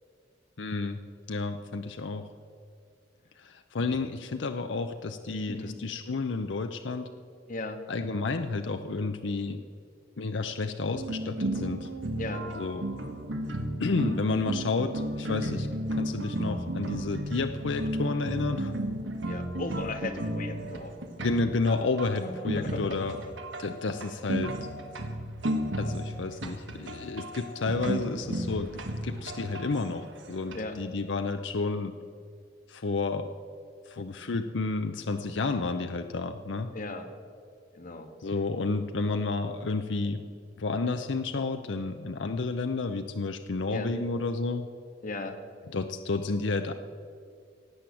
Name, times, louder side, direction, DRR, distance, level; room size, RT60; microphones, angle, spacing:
voice 1, 0.6-1.0 1.3-2.3 3.4-7.1 7.9-9.6 10.2-11.9 12.6-12.8 13.8-18.7 21.2-23.2 23.6-24.6 25.8-32.0 32.7-33.3 33.9-36.7 38.2-40.2 40.6-44.7 45.7-46.7, left 3 dB, 75° left, 7 dB, 0.6 m, -31 dB
voice 2, 5.5-5.8 7.5-7.9 12.2-12.5 19.2-20.9 22.1-23.2 30.5-30.8 36.7-37.1 37.7-38.1 43.7-43.9 45.0-45.4, left 2 dB, 50° left, 6 dB, 1.5 m, -37 dB
sound 1, 10.9-30.6, right 1 dB, 85° right, 1.5 m, -34 dB
16.5 x 8.5 x 7.7 m, 2.2 s
head